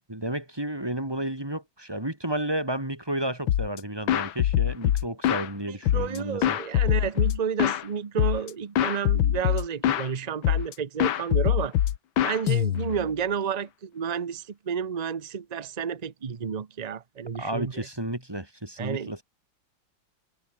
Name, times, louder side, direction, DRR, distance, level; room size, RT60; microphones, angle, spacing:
voice 1, 0.1-6.6 17.4-19.2, right 1 dB, 10° right, 2.4 m, -32 dB
sound 1, 3.5-3.8 4.1-5.5 5.9-7.8 8.2-8.5 8.8-10.1 10.4-10.7 11.0-13.1, left 11 dB, 75° left, 1.8 m, -24 dB
voice 2, 5.7-11.7 12.2-17.9 18.8-19.2, right 7 dB, 55° right, 0.4 m, -31 dB
omnidirectional pair, 2.3 m